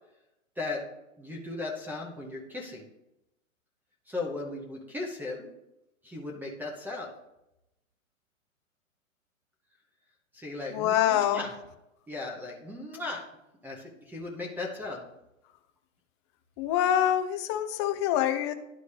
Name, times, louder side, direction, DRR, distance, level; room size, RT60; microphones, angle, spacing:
voice 1, 1.2-2.9 4.1-5.5 6.0-7.1 10.3-11.5 12.1-13.2 13.6-15.0, left 3 dB, 5° right, 0 dB, 0.8 m, -37 dB
voice 2, 10.7-11.4 16.6-18.5, left 11 dB, 20° left, 8 dB, 0.4 m, -25 dB
11.5 x 4.1 x 3.3 m, 0.90 s
hypercardioid pair, 130°, 41 cm